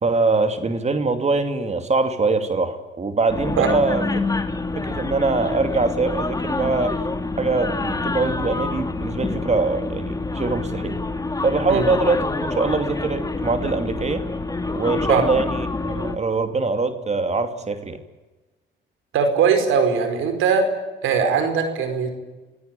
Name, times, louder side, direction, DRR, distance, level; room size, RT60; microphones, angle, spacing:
voice 1, 0.0-4.0 4.8-7.0 7.4-11.0 11.4-14.2 14.7-18.0, right 3 dB, 35° right, 8 dB, 2.6 m, -23 dB
sound 1, 3.3-16.2, left 3 dB, 20° left, 2.4 m, -27 dB
voice 2, 19.1-20.6 21.0-22.1, right 6 dB, 90° right, 7 dB, 4.9 m, -20 dB
27.0 x 17.5 x 9.4 m, 1.2 s
cardioid pair, 90°, 20 cm